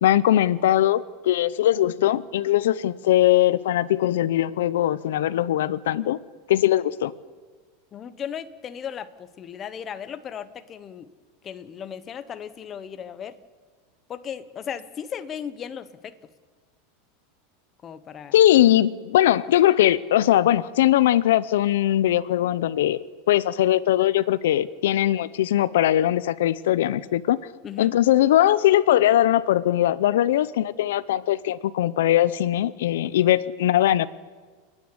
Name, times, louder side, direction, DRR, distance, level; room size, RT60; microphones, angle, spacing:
voice 1, 0.0-6.2 6.5-7.1 18.3-23.0 23.3-27.4 27.8-34.1, left 13 dB, 80° left, 18 dB, 0.7 m, -20 dB
voice 2, 7.9-11.1 11.4-13.4 14.1-16.2 17.8-18.7 27.6-27.9 33.0-33.3, left 8 dB, 20° left, 12 dB, 0.9 m, -36 dB
29.0 x 9.7 x 9.8 m, 1.5 s
supercardioid pair, 175°, 0 cm